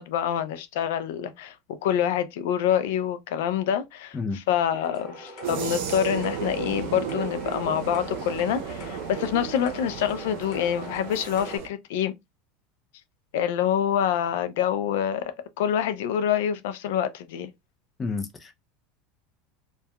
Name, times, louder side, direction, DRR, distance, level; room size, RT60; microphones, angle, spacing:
voice 1, 0.0-1.6 1.8-12.1 13.3-17.5, left 9 dB, 80° left, 0.4 m, -26 dB
sound 1, 4.7-11.6, left 1 dB, 40° left, 1.1 m, -42 dB
sound 2, 5.4-11.7, right 7 dB, 70° right, 0.6 m, -34 dB
voice 2, 18.0-18.5, left 4 dB, 20° left, 0.5 m, -30 dB
2.7 x 2.2 x 2.3 m
supercardioid pair, 130°, 0 cm